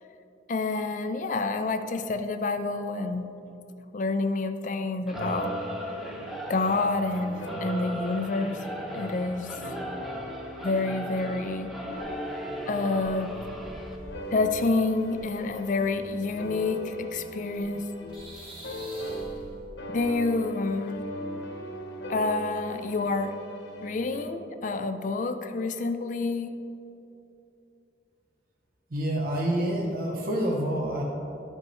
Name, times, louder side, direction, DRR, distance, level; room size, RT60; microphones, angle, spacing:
voice 1, 0.5-3.3 3.9-5.5 6.5-8.7 8.9-9.6 10.6-11.7 12.7-13.3 14.3-17.8 19.9-21.0 22.1-23.3 23.8-26.5, left 3 dB, 45° left, 9 dB, 0.4 m, -28 dB
sound 1, 5.1-19.5 19.8-24.2, equal, 85° left, 1.5 m, -39 dB
Singing / Musical instrument, 5.1-14.0, equal, ahead, 0.6 m, -38 dB
sound 2, 11.9-17.8 18.1-19.7, equal, 30° right, 1.6 m, -49 dB
voice 2, 28.9-31.0, right 1 dB, 55° right, -1 dB, 0.8 m, -27 dB
12.5 x 5.4 x 3.1 m, 2.8 s
head